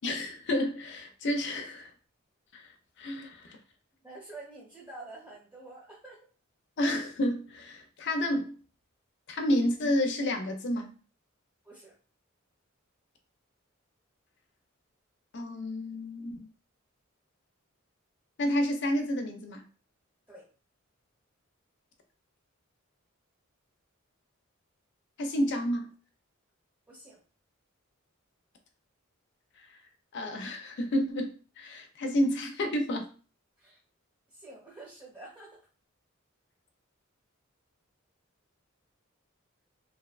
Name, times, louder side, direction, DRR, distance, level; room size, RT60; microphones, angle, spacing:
voice 1, 0.0-1.9 2.5-2.7 3.0-3.6 6.8-8.5 9.3-10.9 15.3-16.5 18.4-19.6 25.2-25.9 29.6-29.7 30.1-33.1, left 1 dB, 55° left, 4 dB, 0.4 m, -30 dB
voice 2, 4.0-6.2 11.6-11.9 20.3-20.4 26.9-27.2 33.6-33.8 34.3-35.6, right 2 dB, 10° right, -7 dB, 0.8 m, -48 dB
2.6 x 2.0 x 2.4 m, 0.38 s
head